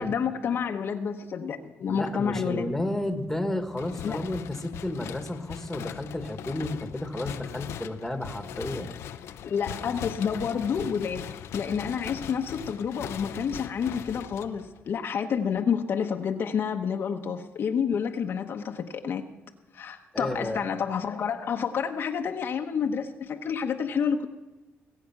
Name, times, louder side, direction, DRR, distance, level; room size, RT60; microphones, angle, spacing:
voice 1, 0.0-2.7 4.0-4.2 9.5-11.2 11.5-19.2 19.7-24.3, left 7 dB, 55° left, 4 dB, 1.0 m, -29 dB
voice 2, 1.9-8.9 20.1-20.6, left 1 dB, 5° left, 7 dB, 1.6 m, -32 dB
sound 1, 3.7-14.9, left 10 dB, 80° left, 0.7 m, -40 dB
20.5 x 8.6 x 5.9 m, 1.2 s
cardioid pair, 110°, 5 cm